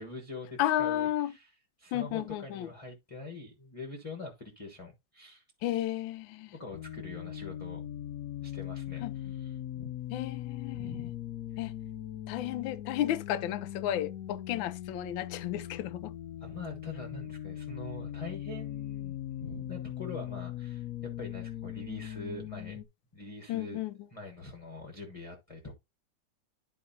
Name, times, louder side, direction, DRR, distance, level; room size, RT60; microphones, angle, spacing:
voice 1, 0.0-1.5 1.8-5.4 6.5-7.8 8.4-9.9 10.7-11.1 16.4-22.8 23.1-23.8 24.1-25.7, left 2 dB, 20° left, 1.0 m, -44 dB
voice 2, 0.6-1.3 1.9-2.7 5.6-6.5 9.0-9.1 10.1-11.0 11.6-11.8 12.3-16.2 23.5-23.9, left 12 dB, 90° left, 1.3 m, -33 dB
sound 1, 6.7-22.8, left 12 dB, 65° left, 0.9 m, -40 dB
11.5 x 4.6 x 2.7 m
omnidirectional pair, 2.0 m